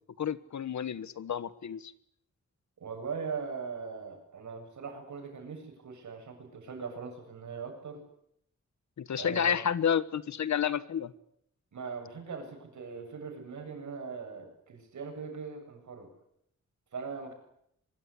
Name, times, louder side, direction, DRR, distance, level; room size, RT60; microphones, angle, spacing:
voice 1, 0.2-1.9 9.0-11.1, left 8 dB, 75° left, 16 dB, 1.4 m, -30 dB
voice 2, 2.8-8.0 9.2-9.6 11.7-16.1 16.9-17.3, right 5 dB, 80° right, 5 dB, 7.8 m, -40 dB
23.5 x 23.0 x 10.0 m, 0.74 s
wide cardioid pair, 165°, 29 cm